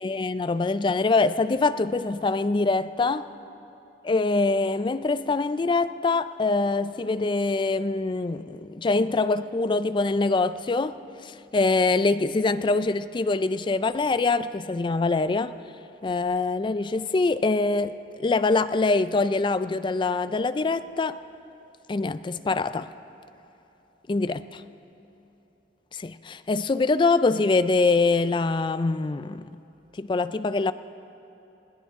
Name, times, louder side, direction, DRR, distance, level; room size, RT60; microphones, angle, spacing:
voice 1, 0.0-3.3 4.0-15.6 16.0-17.9 18.2-21.2 21.9-22.9 24.1-24.4 25.9-29.5 30.0-30.7, left 3 dB, 30° left, 0.4 m, -24 dB
21.0 x 17.0 x 3.6 m
head